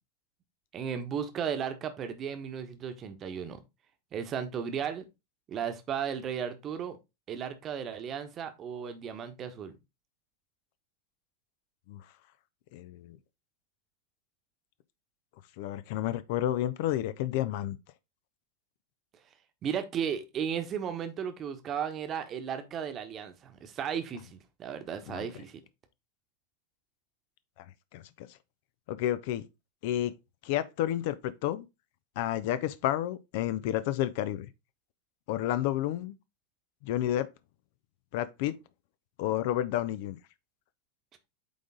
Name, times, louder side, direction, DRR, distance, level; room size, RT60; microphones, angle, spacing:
voice 1, 0.7-3.6 4.1-5.0 5.5-7.0 7.3-9.7 19.6-25.6, right 8 dB, 30° right, 1.1 m, -35 dB
voice 2, 12.7-13.2 15.6-17.8 25.1-25.3 27.6-27.7 27.9-28.3 28.9-29.4 29.8-30.1 30.4-31.7 32.2-34.5 35.3-36.1 36.8-37.3 38.1-38.5 39.2-40.2, left 12 dB, 50° left, 0.5 m, -30 dB
8.4 x 3.7 x 3.8 m
figure-of-eight pair, 90°, 0 cm